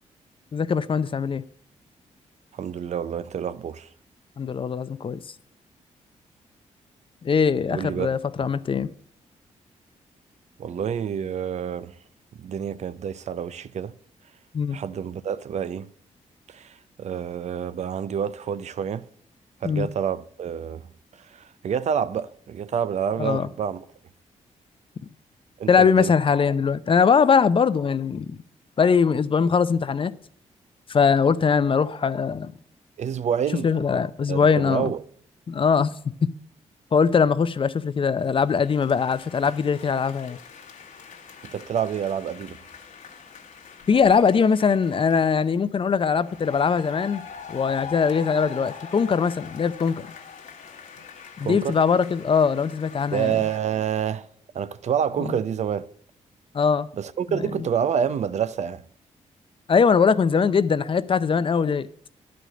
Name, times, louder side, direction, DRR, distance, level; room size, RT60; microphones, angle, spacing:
voice 1, 0.5-1.4 4.4-5.2 7.2-8.9 14.5-14.8 19.6-19.9 23.2-23.5 25.7-28.4 28.8-30.1 30.9-32.5 33.6-34.9 35.5-35.9 36.2-36.3 36.9-40.4 43.9-47.2 47.5-50.1 51.4-53.4 55.2-55.3 56.5-56.9 57.3-57.4 59.7-61.9, left 6 dB, 45° left, 0.6 m, -21 dB
voice 2, 2.5-3.9 7.7-8.1 10.6-11.9 12.4-13.9 14.7-15.9 16.5-19.1 19.6-20.9 21.2-23.8 25.6-26.1 33.0-33.7 34.3-35.0 41.4-42.6 51.4-51.8 53.1-54.3 54.5-55.9 57.0-58.8, right 8 dB, 60° right, 0.6 m, -28 dB
sound 1, 38.2-45.5 46.2-53.6, left 6 dB, 80° left, 1.6 m, -43 dB
11.0 x 5.2 x 7.6 m
cardioid pair, 85°, 13 cm